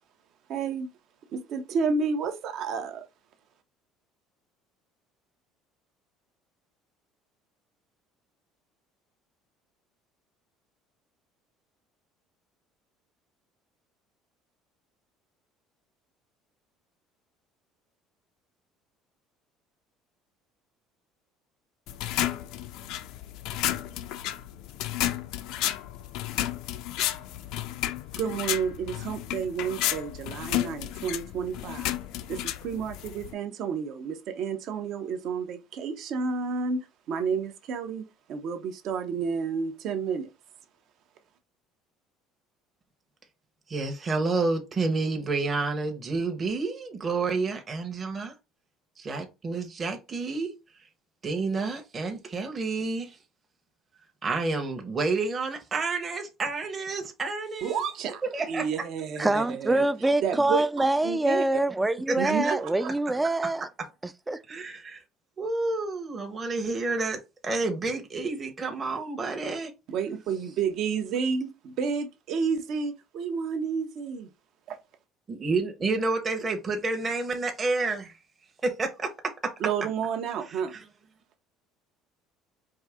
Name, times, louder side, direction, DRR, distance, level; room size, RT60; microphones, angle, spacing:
voice 1, 0.5-0.9 1.3-3.1 28.2-31.9 32.3-32.4 32.6-40.3 57.6-58.2 58.5-59.8 60.2-61.4 62.2-62.9 69.9-74.3 74.7-74.8 79.6-80.8, right 6 dB, 60° right, 0.8 m, -30 dB
sound 1, 21.9-33.3, left 13 dB, 75° left, 0.4 m, -32 dB
voice 2, 43.7-48.3 49.0-50.5 51.2-53.2 54.2-57.8 58.3-58.7 62.1-62.5 64.5-65.0 65.4-69.7 75.3-78.1 78.6-79.1 79.4-79.5 80.5-80.6, right 3 dB, 30° right, 0.9 m, -29 dB
voice 3, 59.2-63.7 64.0-64.4, right 2 dB, 10° right, 0.3 m, -25 dB
4.7 x 2.7 x 3.5 m
cardioid pair, 110°, 0 cm